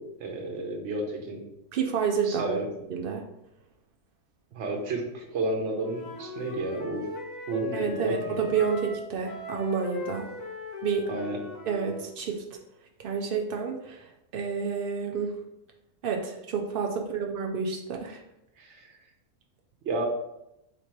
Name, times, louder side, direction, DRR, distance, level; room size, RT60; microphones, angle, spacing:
voice 1, 0.0-1.4 2.2-2.7 4.5-7.1 7.5-8.5 11.0-11.4 18.6-19.0 19.8-20.1, right 2 dB, 55° right, 1 dB, 1.0 m, -31 dB
voice 2, 1.7-2.6 2.9-3.2 7.7-10.3 10.8-11.1 11.7-12.4 13.0-15.3 16.0-18.2, right 6 dB, 85° right, 2 dB, 0.4 m, -29 dB
Wind instrument woodwind instrument, 5.8-12.0, left 4 dB, 65° left, 1.4 m, -39 dB
4.1 x 2.8 x 4.6 m, 0.85 s
omnidirectional pair, 1.6 m